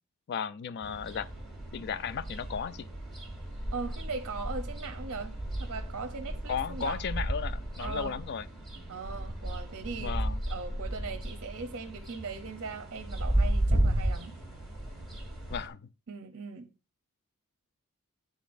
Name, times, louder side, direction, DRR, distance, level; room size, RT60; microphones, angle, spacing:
voice 1, 0.3-1.3 1.7-2.9 6.5-8.5 10.0-10.4 15.5-15.9, left 7 dB, 50° left, 0.3 m, -35 dB
sound 1, 0.8-15.7, right 1 dB, ahead, 1.7 m, -34 dB
voice 2, 3.7-7.1 7.8-8.2 8.9-14.4 16.1-16.7, right 4 dB, 55° right, 0.6 m, -39 dB
11.0 x 4.0 x 2.5 m
head